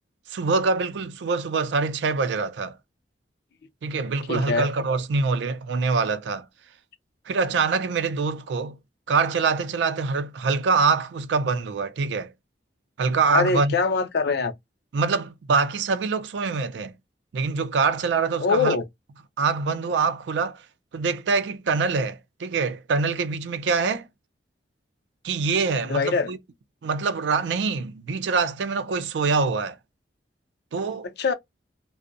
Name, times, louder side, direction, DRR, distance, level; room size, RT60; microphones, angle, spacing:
voice 1, 0.3-2.8 3.8-6.5 7.3-8.8 9.1-12.3 13.0-13.7 14.9-16.9 17.3-18.7 19.4-20.6 20.9-24.1 25.2-26.4 26.8-29.8 30.7-31.1, right 4 dB, 85° right, 0.4 m, -24 dB
voice 2, 4.0-4.7 13.3-14.5 18.4-18.8 25.9-26.3 31.2-31.3, left 4 dB, 65° left, 0.5 m, -23 dB
2.5 x 2.0 x 2.5 m
head